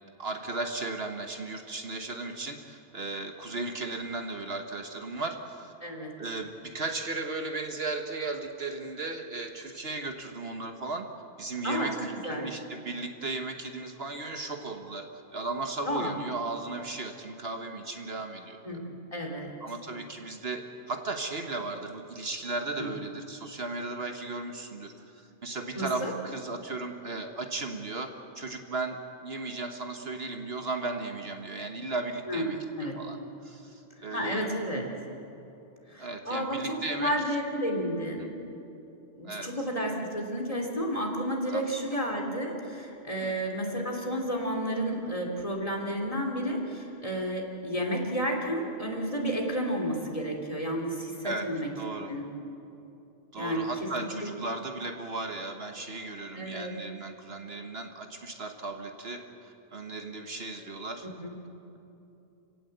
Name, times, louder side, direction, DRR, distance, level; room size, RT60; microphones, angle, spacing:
voice 1, 0.2-5.7 6.2-11.1 11.4-18.8 19.6-33.2 33.4-34.5 36.0-37.3 38.2-38.3 39.2-39.5 41.5-41.6 43.2-43.3 47.8-47.9 51.2-51.5 51.7-52.1 53.3-61.1, right 3 dB, 55° right, 5 dB, 1.5 m, -36 dB
voice 2, 5.8-6.1 11.6-12.5 15.8-16.1 18.6-18.8 19.1-19.5 22.8-22.9 25.7-26.1 32.3-32.5 32.8-33.0 34.1-34.8 35.9-38.3 39.2-51.7 52.1-52.3 53.3-53.9 54.2-54.3 56.3-56.7 61.0-61.3, equal, 30° left, 0 dB, 3.2 m, -31 dB
28.0 x 17.5 x 8.0 m, 2.9 s
omnidirectional pair, 1.2 m